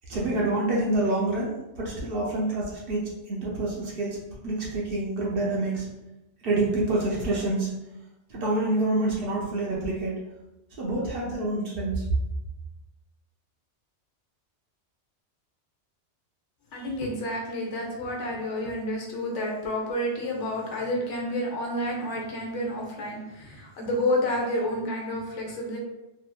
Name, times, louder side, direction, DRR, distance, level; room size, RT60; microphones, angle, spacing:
voice 1, 0.1-5.9 6.4-7.7 8.3-10.2 10.8-12.0, right 2 dB, 55° right, -4 dB, 0.8 m, -27 dB
voice 2, 16.7-25.8, left 1 dB, 75° left, -1 dB, 1.0 m, -30 dB
2.7 x 2.5 x 2.2 m, 0.95 s
omnidirectional pair, 1.2 m